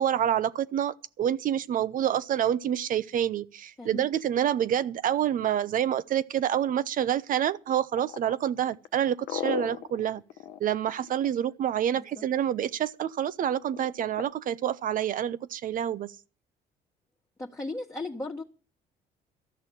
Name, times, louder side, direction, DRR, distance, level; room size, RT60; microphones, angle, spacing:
voice 1, 0.0-10.2 10.6-16.1, right 10 dB, 55° right, 0.8 m, -27 dB
sound 1, 8.0-11.7 13.7-14.3, left 12 dB, 75° left, 1.0 m, -36 dB
voice 2, 17.4-18.4, left 2 dB, 15° left, 1.6 m, -36 dB
13.5 x 6.3 x 9.9 m
cardioid pair, 110°, 17 cm